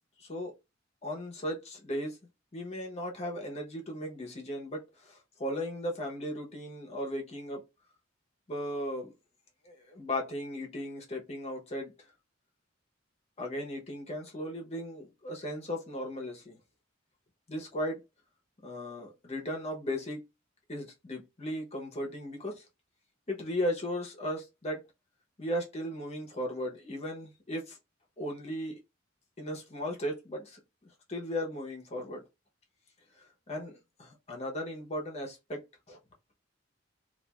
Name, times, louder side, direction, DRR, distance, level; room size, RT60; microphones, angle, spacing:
voice 1, 0.2-0.5 1.0-2.2 2.5-7.6 8.5-9.1 9.6-11.9 13.4-16.6 17.5-18.0 18.6-20.2 20.7-22.6 23.3-24.8 25.4-27.8 28.2-28.8 29.4-30.6 31.1-32.2 33.2-35.6 35.9-36.0, equal, 35° left, 0.8 m, -36 dB
3.2 x 2.4 x 2.3 m
head